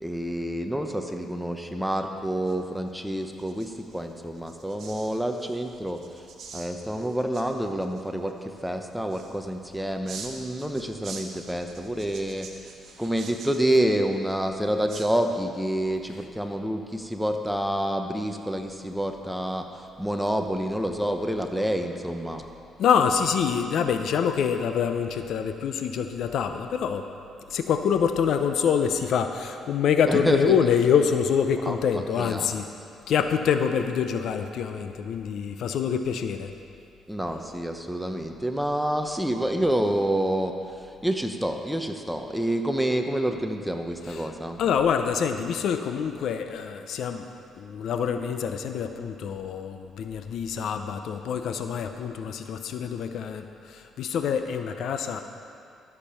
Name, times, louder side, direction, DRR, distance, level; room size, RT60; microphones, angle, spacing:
voice 1, 0.0-6.0 6.5-12.7 13.0-19.7 20.0-22.4 30.1-30.6 31.7-31.8 32.2-32.5 37.1-44.6, right 1 dB, 5° right, 4 dB, 0.9 m, -28 dB
sound 1, 2.1-15.7, right 4 dB, 65° right, 1.3 m, -47 dB
voice 2, 22.8-27.1 27.5-32.7 33.1-36.5 44.1-44.3 44.6-47.3 47.6-55.2, left 7 dB, 75° left, 7 dB, 0.6 m, -26 dB
13.5 x 6.8 x 5.7 m, 2.5 s
cardioid pair, 90°, 0 cm